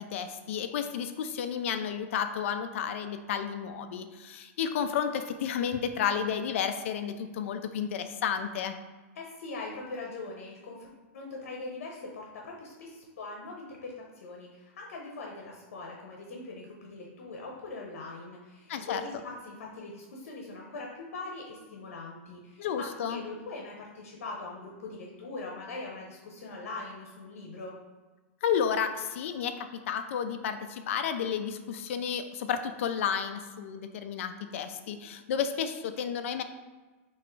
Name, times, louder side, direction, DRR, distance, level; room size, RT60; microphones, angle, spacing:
voice 1, 0.0-8.7 18.7-19.0 22.6-23.2 28.4-36.4, left 7 dB, 65° left, 9 dB, 0.4 m, -32 dB
voice 2, 9.1-27.8, left 3 dB, 80° left, -1 dB, 0.9 m, -42 dB
3.6 x 3.0 x 4.5 m, 1.2 s
supercardioid pair, 155°, 8 cm